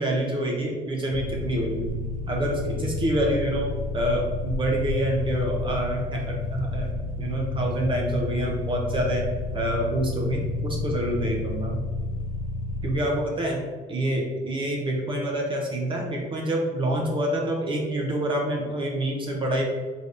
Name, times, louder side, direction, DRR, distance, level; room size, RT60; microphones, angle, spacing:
voice 1, 0.0-1.9 2.3-6.9 7.2-9.2 9.5-11.8 12.8-13.6 13.9-19.6, right 1 dB, 30° right, 0 dB, 0.6 m, -27 dB
sound 1, 1.1-13.0, left 3 dB, 50° left, 0.6 m, -31 dB
3.9 x 3.2 x 2.5 m, 1.5 s
cardioid pair, 110°, 17 cm